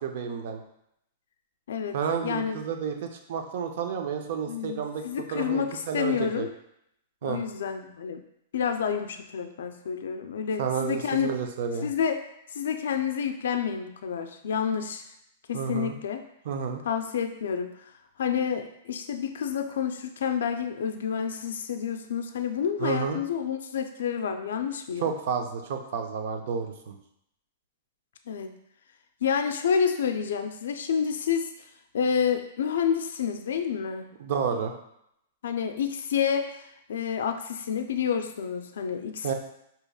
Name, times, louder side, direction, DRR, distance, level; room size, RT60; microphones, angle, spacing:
voice 1, 0.0-0.6 1.9-5.0 5.3-6.5 7.2-7.4 10.6-11.9 15.5-15.9 16.5-16.8 22.8-23.2 25.0-27.0 34.2-34.7 39.2-39.3, right 6 dB, 60° right, 5 dB, 0.5 m, -30 dB
voice 2, 1.7-2.0 2.2-2.6 4.5-6.5 7.2-8.2 8.5-11.3 11.8-12.2 12.5-15.0 15.5-16.2 16.8-17.9 18.2-25.1 28.3-28.5 29.2-31.7 31.9-34.1 35.4-39.3, left 7 dB, 80° left, 6 dB, 0.3 m, -29 dB
5.0 x 2.8 x 2.3 m, 0.77 s
hypercardioid pair, 145°, 0 cm